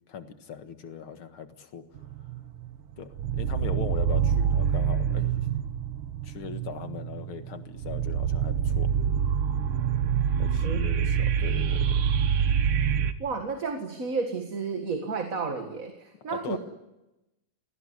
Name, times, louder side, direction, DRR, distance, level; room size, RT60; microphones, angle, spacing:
voice 1, 0.1-1.9 3.0-5.5 6.2-8.9 10.4-12.1 16.3-16.6, left 7 dB, 80° left, 8 dB, 2.5 m, -39 dB
sound 1, 2.0-2.7 3.1-13.1, right 8 dB, 85° right, 2.0 m, -26 dB
voice 2, 13.2-16.6, right 4 dB, 40° right, 5 dB, 2.1 m, -31 dB
27.5 x 19.0 x 9.7 m, 0.96 s
omnidirectional pair, 2.3 m